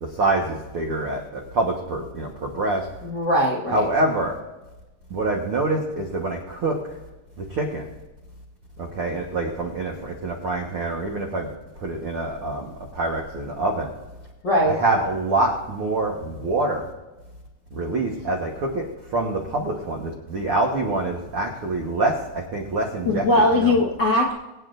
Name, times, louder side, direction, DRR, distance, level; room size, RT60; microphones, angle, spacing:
voice 1, 0.0-2.9 3.7-4.3 5.1-7.0 7.4-7.8 8.8-11.5 11.8-12.7 12.9-13.9 14.7-16.9 17.7-18.8 19.1-23.7, right 2 dB, 75° right, 0 dB, 1.2 m, -25 dB
voice 2, 3.0-3.8 14.4-14.8 23.0-24.3, left 1 dB, 70° left, -3 dB, 1.0 m, -20 dB
23.5 x 9.1 x 2.6 m, 1.1 s
omnidirectional pair, 4.6 m